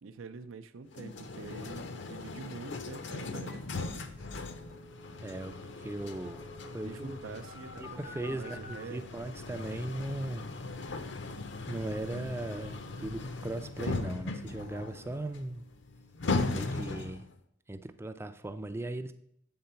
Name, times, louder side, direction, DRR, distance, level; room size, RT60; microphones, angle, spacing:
voice 1, 0.0-4.0 6.8-9.0, right 4 dB, 90° right, 10 dB, 0.5 m, -45 dB
sound 1, 0.9-17.3, left 3 dB, 60° left, 0.6 m, -39 dB
sound 2, 3.5-3.6 3.8-3.9 4.2-8.8, left 2 dB, 90° left, 1.6 m, -50 dB
voice 2, 5.2-6.4 6.7-7.2 7.8-10.5 10.8-11.2 11.7-15.6 16.5-17.2 17.7-19.1, right 1 dB, 10° right, 10 dB, 0.3 m, -38 dB
7.8 x 3.8 x 5.6 m, 0.72 s
head